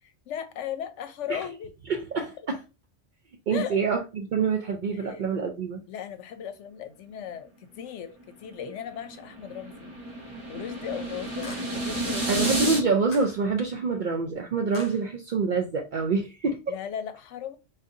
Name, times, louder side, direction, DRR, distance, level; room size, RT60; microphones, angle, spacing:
voice 1, 0.0-1.7 3.5-3.8 4.9-5.3 5.9-9.9 10.5-12.6 16.7-17.6, left 9 dB, 75° left, 0.9 m, -37 dB
voice 2, 1.9-2.6 3.5-5.8 12.3-16.6, right 4 dB, 60° right, 0.5 m, -26 dB
sound 1, 8.5-12.8, right 1 dB, 25° right, 1.0 m, -31 dB
sound 2, 10.1-10.2 11.4-11.9 13.1-13.5 14.7-15.1, left 3 dB, 40° left, 0.6 m, -44 dB
4.0 x 2.6 x 2.5 m
omnidirectional pair, 1.2 m